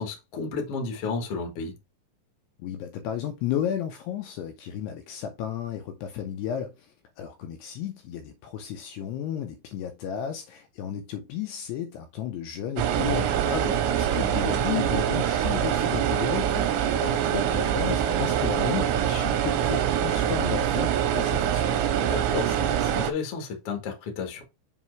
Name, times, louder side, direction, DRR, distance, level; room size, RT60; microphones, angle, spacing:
voice 1, 0.0-1.7 13.5-13.8 17.0-17.2 22.0-24.4, left 4 dB, 65° left, 1.5 m, -32 dB
voice 2, 2.6-13.3 13.9-21.7, left 10 dB, 80° left, 2.5 m, -33 dB
sound 1, 12.8-23.1, right 9 dB, 80° right, 2.9 m, -24 dB
7.3 x 3.0 x 4.6 m
omnidirectional pair, 5.3 m